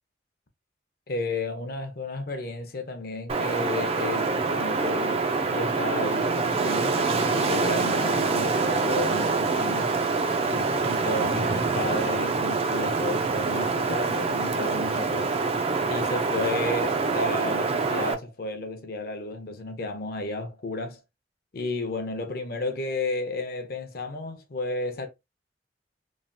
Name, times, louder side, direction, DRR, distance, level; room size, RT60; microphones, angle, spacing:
voice 1, 1.1-10.0 10.5-15.3 15.9-21.0 21.5-25.1, left 2 dB, 55° left, 0.6 m, -32 dB
Wind, 3.3-18.1, right 4 dB, 35° right, 0.3 m, -25 dB
3.2 x 2.3 x 2.5 m
head